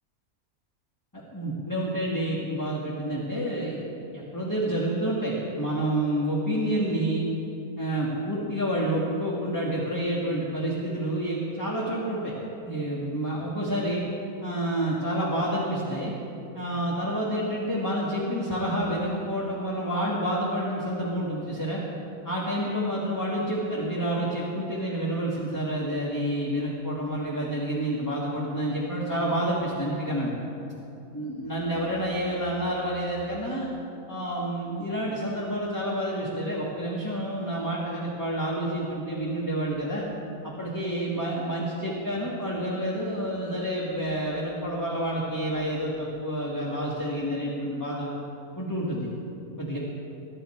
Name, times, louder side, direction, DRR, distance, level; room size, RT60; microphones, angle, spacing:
voice 1, 1.1-3.9 4.1-7.3 7.8-12.3 12.6-14.0 14.4-16.1 16.5-21.8 22.2-30.3 31.1-33.7 34.1-40.0 40.4-48.1 48.6-49.1 49.6-49.8, right 1 dB, 15° left, -5 dB, 1.7 m, -29 dB
21.0 x 11.5 x 4.4 m, 2.7 s
omnidirectional pair, 1.5 m